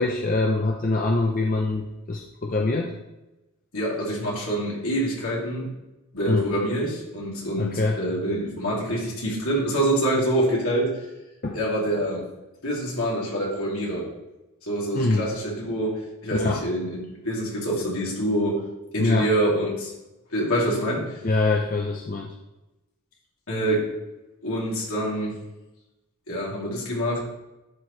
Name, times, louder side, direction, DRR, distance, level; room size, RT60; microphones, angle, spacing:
voice 1, 0.0-2.9 6.3-6.5 7.6-8.0 11.4-11.6 14.9-15.3 16.3-16.6 19.0-19.3 21.2-22.3, left 2 dB, 40° left, 1 dB, 0.5 m, -24 dB
voice 2, 3.7-5.7 6.1-10.9 11.5-12.3 12.6-14.1 14.6-18.6 18.9-19.9 20.3-21.2 23.5-23.9 24.4-25.3 26.3-27.2, right 1 dB, 75° left, -4 dB, 2.7 m, -26 dB
11.0 x 4.6 x 3.2 m, 1.0 s
head